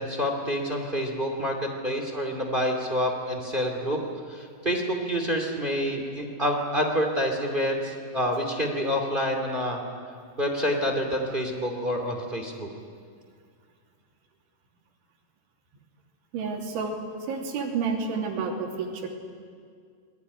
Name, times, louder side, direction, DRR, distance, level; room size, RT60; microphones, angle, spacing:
voice 1, 0.0-4.0 4.3-9.8 10.4-12.7, equal, 25° right, 3 dB, 1.1 m, -27 dB
voice 2, 16.3-17.0 17.3-19.1, right 5 dB, 70° right, 0 dB, 5.2 m, -30 dB
27.5 x 21.0 x 9.9 m, 2.2 s
omnidirectional pair, 5.8 m